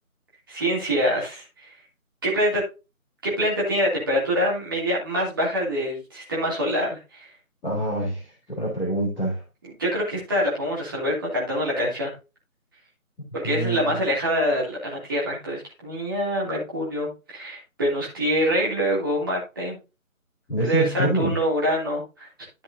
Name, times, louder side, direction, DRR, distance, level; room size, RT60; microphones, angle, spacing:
voice 1, 0.5-1.7 2.2-2.6 3.2-7.3 9.8-12.1 13.3-19.8 20.6-22.3, equal, 15° right, -5 dB, 2.8 m, -25 dB
voice 2, 7.6-9.4 13.4-14.0 20.5-21.4, right 1 dB, ahead, -18 dB, 1.8 m, -26 dB
13.5 x 5.4 x 2.7 m, 0.29 s
figure-of-eight pair, 160°, 42 cm